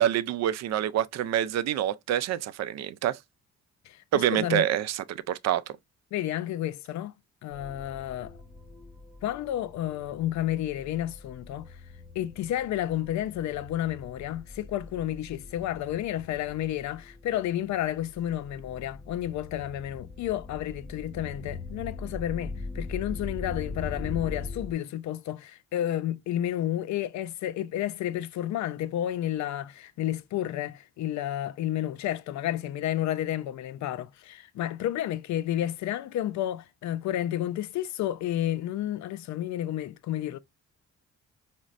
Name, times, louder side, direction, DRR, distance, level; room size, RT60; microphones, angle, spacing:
voice 1, 0.0-3.2 4.1-5.6, right 11 dB, 60° right, 0.4 m, -26 dB
voice 2, 3.9-4.7 6.1-7.1 7.4-8.3 9.2-11.8 12.2-40.4, left 12 dB, 70° left, 0.5 m, -31 dB
sound 1, 7.5-24.7, left 3 dB, 5° right, 1.9 m, -42 dB
5.0 x 2.1 x 2.4 m
cardioid pair, 90°, 30 cm